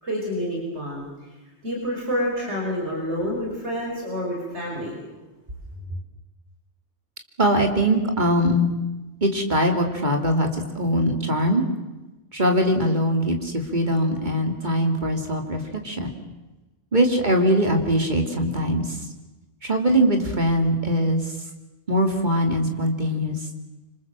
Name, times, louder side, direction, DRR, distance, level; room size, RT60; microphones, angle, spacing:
voice 1, 0.0-1.1 1.6-5.0, equal, 70° right, -2 dB, 5.8 m, -28 dB
voice 2, 7.4-8.7 9.2-11.7 12.3-16.1 16.9-19.1 19.6-21.4 21.9-23.5, equal, 40° right, 4 dB, 3.2 m, -22 dB
26.0 x 25.5 x 7.6 m, 1.1 s
omnidirectional pair, 1.2 m